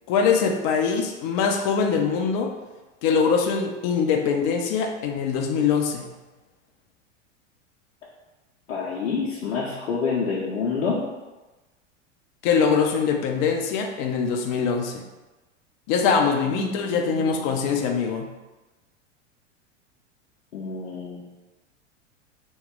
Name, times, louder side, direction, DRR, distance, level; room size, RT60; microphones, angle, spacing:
voice 1, 0.1-2.5 3.0-6.1 12.4-15.0 15.9-18.3, left 6 dB, 40° left, 3 dB, 0.5 m, -23 dB
voice 2, 8.7-11.0 16.5-17.8 20.5-21.2, left 5 dB, 75° left, -5 dB, 0.7 m, -28 dB
3.0 x 2.3 x 3.6 m, 1.1 s
figure-of-eight pair, 90°, 37 cm